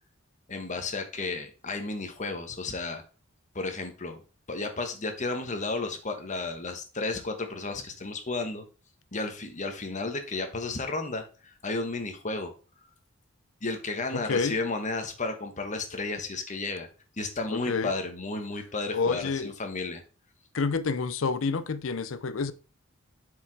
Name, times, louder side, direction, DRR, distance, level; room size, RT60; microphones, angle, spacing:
voice 1, 0.5-3.0 3.5-4.2 4.5-8.6 9.1-11.2 11.6-12.5 13.6-16.9 17.2-20.0, left 3 dB, 35° left, 1.3 m, -33 dB
voice 2, 14.1-14.6 17.5-17.9 18.9-19.5 20.5-22.5, left 4 dB, 70° left, 0.6 m, -28 dB
6.8 x 4.9 x 4.7 m
head